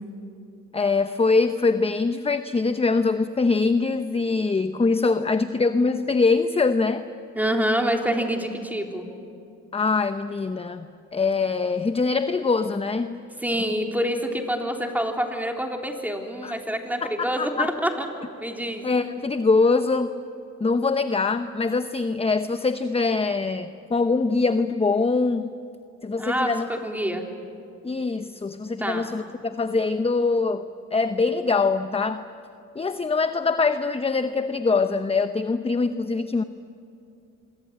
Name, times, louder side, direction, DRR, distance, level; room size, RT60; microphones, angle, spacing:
voice 1, 0.7-7.1 9.7-13.2 16.4-16.5 17.0-17.7 18.8-20.1 20.6-25.5 26.0-26.7 27.8-30.6 30.9-32.2 32.7-36.4, left 4 dB, 20° left, 10 dB, 0.9 m, -23 dB
voice 2, 7.4-9.1 13.4-18.1 18.4-18.8 26.2-27.2 28.8-29.1, equal, 5° right, 3 dB, 3.7 m, -26 dB
26.5 x 23.5 x 9.0 m, 2.6 s
cardioid pair, 90°, 30 cm